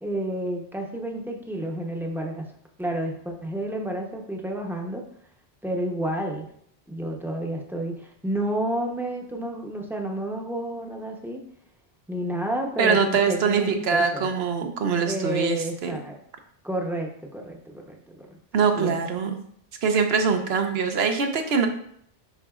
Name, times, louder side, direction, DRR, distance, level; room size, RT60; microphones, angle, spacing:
voice 1, 0.0-2.5 2.8-5.0 5.6-6.5 6.9-11.4 12.1-14.3 15.0-16.2 16.6-18.4 18.8-19.0, right 1 dB, ahead, 0 dB, 0.7 m, -30 dB
voice 2, 12.8-15.9 18.5-19.4 19.8-21.7, right 5 dB, 70° right, 6 dB, 1.0 m, -23 dB
10.0 x 3.9 x 2.4 m, 0.68 s
omnidirectional pair, 1.1 m